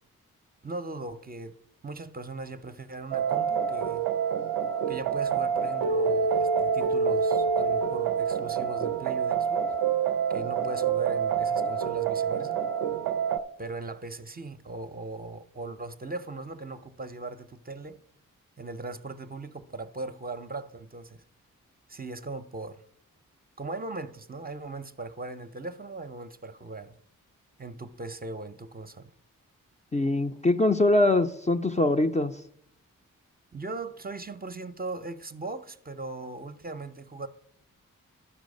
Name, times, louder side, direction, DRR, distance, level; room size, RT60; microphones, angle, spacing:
voice 1, 0.6-1.6 1.8-4.1 4.9-9.8 10.3-12.6 13.6-18.0 18.6-21.2 21.9-22.8 23.6-27.0 27.6-29.1 33.5-37.3, right 2 dB, 25° right, 0.6 m, -39 dB
sound 1, 3.1-13.4, right 6 dB, 90° right, 0.5 m, -27 dB
voice 2, 29.9-32.4, left 2 dB, 20° left, 0.5 m, -23 dB
11.5 x 4.7 x 5.2 m
supercardioid pair, 40°, 34 cm